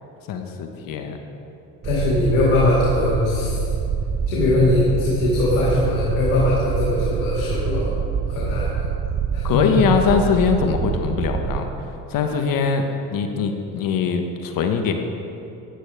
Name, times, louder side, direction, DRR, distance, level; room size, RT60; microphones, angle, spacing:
voice 1, 0.3-1.2 9.4-11.7 12.1-12.8 13.1-14.9, left 6 dB, 55° left, 5 dB, 1.2 m, -22 dB
voice 2, 1.8-3.6 4.3-7.9 8.3-8.7 9.3-9.8, left 2 dB, 90° left, -6 dB, 2.3 m, -20 dB
sound 1, 1.8-11.6, right 7 dB, 30° right, 0.7 m, -26 dB
14.0 x 10.0 x 3.5 m, 2.8 s
hypercardioid pair, 70°, 39 cm